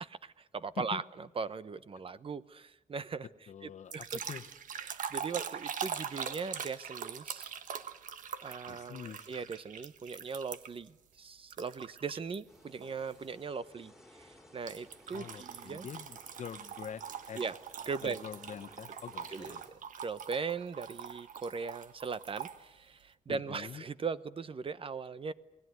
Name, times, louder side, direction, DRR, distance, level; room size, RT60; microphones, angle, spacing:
voice 1, 0.2-3.3 3.6-4.2 4.8-7.5 8.4-13.9 14.2-15.9 17.3-17.6 17.9-18.2 19.3-25.3, right 5 dB, 45° right, 15 dB, 0.9 m, -39 dB
voice 2, 3.5-4.5 8.7-9.3 15.1-17.4 18.0-19.6 23.3-23.8, left 8 dB, 65° left, 9 dB, 1.1 m, -45 dB
sound 1, 3.9-10.9 11.5-12.4 12.8-13.1 14.7-22.6, right 8 dB, 85° right, 1.4 m, -43 dB
sound 2, 12.5-19.7, left 1 dB, ahead, 4.8 m, -60 dB
28.5 x 19.5 x 9.5 m, 0.95 s
wide cardioid pair, 115°, 13 cm